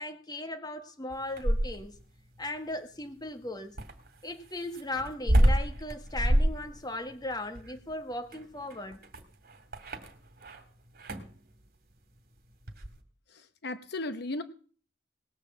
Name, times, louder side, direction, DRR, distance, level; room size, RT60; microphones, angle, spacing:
voice 1, 0.0-2.0 2.4-3.8 4.2-9.0, left 2 dB, 25° left, 1.5 m, -37 dB
sound 1, 1.1-2.0 3.8-10.6 10.9-11.4 12.7-13.0, right 1 dB, 55° right, 2.1 m, -28 dB
voice 2, 13.3-14.4, left 2 dB, 60° left, 0.9 m, -36 dB
19.5 x 6.7 x 7.4 m
head